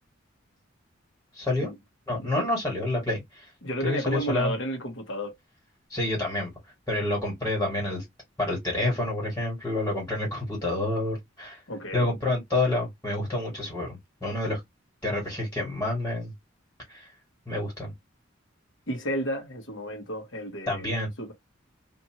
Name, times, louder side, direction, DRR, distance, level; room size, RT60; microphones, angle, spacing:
voice 1, 1.3-1.7 2.1-3.5 3.8-4.5 5.9-6.5 6.9-8.0 8.4-11.6 11.9-14.6 15.0-16.3 16.9-17.1 17.5-17.9 20.7-21.1, left 2 dB, 10° left, 1.6 m, -28 dB
voice 2, 3.6-5.3 11.7-12.1 18.9-20.9 21.2-21.3, equal, 70° left, 1.1 m, -32 dB
2.7 x 2.5 x 2.8 m
head